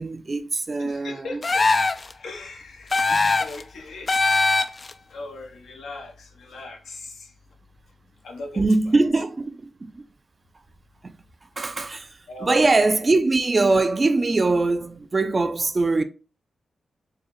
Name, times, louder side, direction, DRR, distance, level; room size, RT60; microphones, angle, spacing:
voice 1, 0.0-1.4 3.1-3.3 8.6-10.0 11.6-12.1 12.4-16.0, right 3 dB, 40° right, 0.4 m, -22 dB
voice 2, 0.5-1.6 2.2-3.1 3.4-4.4 5.1-7.3 8.2-8.6 12.3-12.7, left 2 dB, 80° left, 0.8 m, -39 dB
sound 1, 1.4-2.1 2.9-3.6 4.1-4.9, left 3 dB, 45° left, 0.3 m, -21 dB
4.6 x 2.1 x 3.0 m
supercardioid pair, 45°, 0 cm